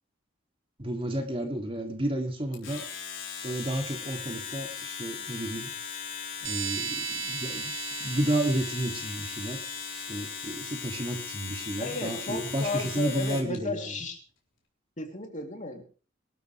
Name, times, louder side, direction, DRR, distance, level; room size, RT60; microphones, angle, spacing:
voice 1, 0.8-2.8 3.4-5.7 6.4-7.7 8.0-13.9, right 1 dB, 30° right, 3 dB, 2.7 m, -32 dB
Domestic sounds home sounds, 2.5-13.6, left 6 dB, 80° left, 4.0 m, -38 dB
sound 1, 6.4-10.7, right 10 dB, 85° right, 1.3 m, -38 dB
voice 2, 11.8-14.2 15.0-15.8, left 2 dB, 40° left, 3 dB, 3.2 m, -34 dB
24.0 x 12.5 x 3.4 m, 0.38 s
head